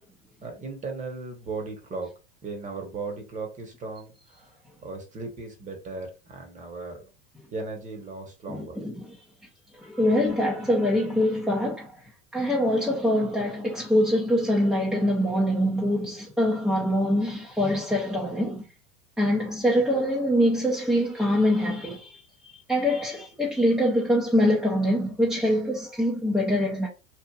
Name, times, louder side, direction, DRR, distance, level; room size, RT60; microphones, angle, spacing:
voice 1, 0.4-2.1 2.4-4.5 4.8-7.1 7.5-8.8, right 3 dB, 20° right, 0.9 m, -36 dB
voice 2, 8.5-9.2 9.7-12.0 12.3-18.7 19.2-26.9, equal, ahead, 0.4 m, -24 dB
2.9 x 2.4 x 2.3 m
hypercardioid pair, 115°, 37 cm